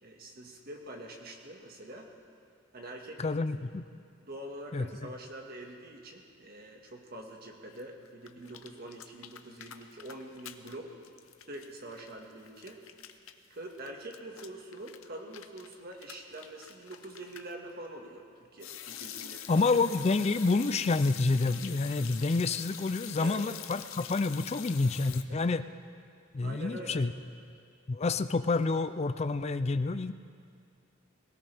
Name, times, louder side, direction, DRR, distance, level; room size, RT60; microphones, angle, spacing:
voice 1, 0.0-2.1 2.7-3.3 4.2-10.9 11.5-12.8 13.5-19.5 23.2-23.4 25.3-25.5 26.4-27.1, right 1 dB, 45° right, 1 dB, 1.7 m, -45 dB
voice 2, 3.2-3.8 4.7-4.9 19.5-25.6 26.3-27.1 27.9-30.1, left 3 dB, 30° left, 12 dB, 0.4 m, -28 dB
sound 1, 7.7-10.8 11.0-17.5 18.6-25.2, left 10 dB, 85° left, 0.8 m, -45 dB
22.5 x 17.5 x 3.5 m, 2.3 s
head